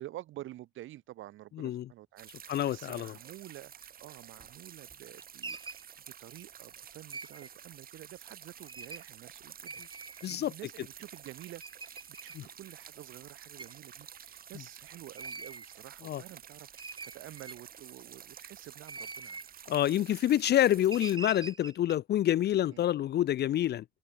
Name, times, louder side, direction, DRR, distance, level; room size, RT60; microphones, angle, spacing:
voice 1, 0.0-5.8 6.2-9.8 10.2-11.9 12.2-16.7 17.1-19.4 22.6-22.8, right 14 dB, 80° right, 1.1 m, -49 dB
voice 2, 1.6-1.9 2.5-3.2 10.2-10.5 12.3-12.5 16.0-16.2 19.7-23.8, left 12 dB, 55° left, 0.5 m, -27 dB
sound 1, 2.2-21.2, right 9 dB, 50° right, 0.9 m, -51 dB
sound 2, 4.4-4.5 4.9-5.8 7.1-7.5 8.7-9.1 9.7-10.3 11.0-11.1 11.6-12.4 13.6-13.8 15.2-15.7 16.3-16.4 16.8-17.8 18.7-19.5 20.9-21.9, right 4 dB, 25° right, 1.5 m, -44 dB
open air
cardioid pair, 90°, 20 cm